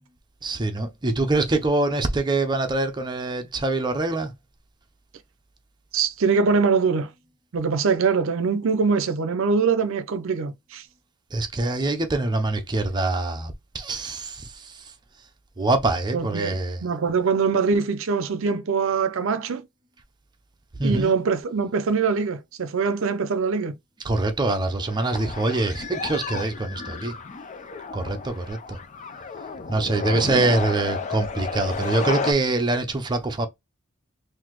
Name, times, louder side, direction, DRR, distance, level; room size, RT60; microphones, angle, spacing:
voice 1, 0.4-4.3 11.3-14.7 15.6-16.8 20.8-21.1 24.1-27.1 27.9-28.8 29.7-33.5, right 2 dB, 20° right, 0.6 m, -24 dB
voice 2, 5.9-7.1 7.5-10.8 16.1-19.6 20.8-23.8, right 5 dB, 65° right, 0.5 m, -23 dB
sound 1, 24.8-32.3, left 4 dB, 35° left, 0.5 m, -32 dB
4.0 x 2.6 x 3.0 m
head